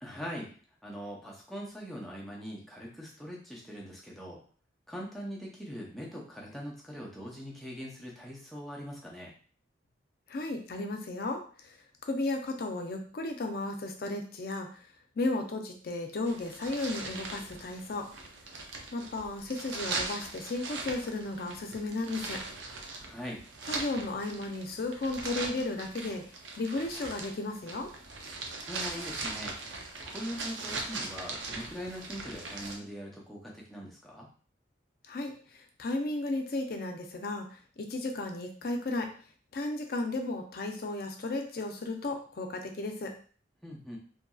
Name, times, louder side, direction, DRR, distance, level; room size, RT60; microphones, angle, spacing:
voice 1, 0.0-0.5 0.8-4.4 4.9-9.4 23.0-23.4 28.7-29.6 30.0-34.3 43.6-44.0, equal, ahead, -3 dB, 0.6 m, -42 dB
voice 2, 10.3-14.8 15.2-18.1 18.9-22.4 23.7-26.2 26.6-27.9 35.1-39.1 39.5-43.1, left 2 dB, 55° left, 4 dB, 0.5 m, -34 dB
sound 1, 16.3-32.8, right 3 dB, 80° right, 0.5 m, -40 dB
2.8 x 2.6 x 2.3 m, 0.42 s
head